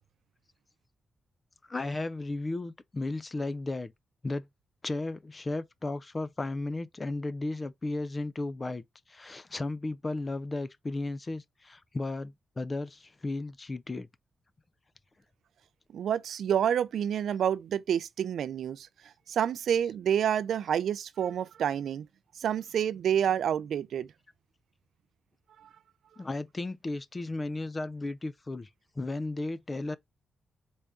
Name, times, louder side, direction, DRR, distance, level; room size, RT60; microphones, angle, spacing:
voice 1, 1.7-3.9 4.2-4.5 4.8-14.1 26.2-28.7 29.0-30.0, left 2 dB, 25° left, 0.3 m, -34 dB
voice 2, 15.9-18.9 19.3-22.1 22.4-24.1, right 9 dB, 75° right, 0.3 m, -28 dB
4.0 x 3.5 x 3.6 m
wide cardioid pair, 145°, 0 cm